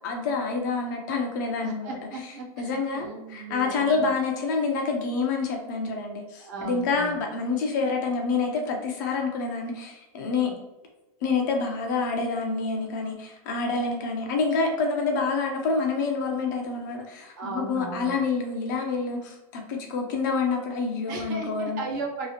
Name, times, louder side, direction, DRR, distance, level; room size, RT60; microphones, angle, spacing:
voice 1, 0.0-2.0 2.6-10.5 11.2-21.8, left 4 dB, 30° left, 2 dB, 0.4 m, -27 dB
voice 2, 1.6-4.1 6.4-7.2 10.4-10.6 17.4-18.2 21.1-22.3, right 3 dB, 30° right, 0 dB, 0.4 m, -36 dB
2.8 x 2.3 x 2.7 m, 0.97 s
supercardioid pair, 170°, 19 cm